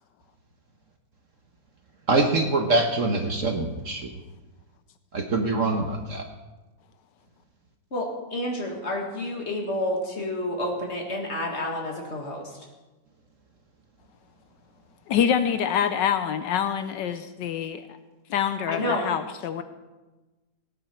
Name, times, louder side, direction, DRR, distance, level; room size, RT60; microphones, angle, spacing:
voice 1, 2.1-4.1 5.1-6.3, right 2 dB, 50° right, 4 dB, 1.2 m, -24 dB
voice 2, 7.9-12.6 18.7-19.1, left 1 dB, 35° left, 1 dB, 2.0 m, -29 dB
voice 3, 15.1-17.8 18.3-19.6, left 8 dB, 75° left, 10 dB, 1.3 m, -25 dB
18.0 x 9.1 x 4.5 m, 1.1 s
omnidirectional pair, 2.1 m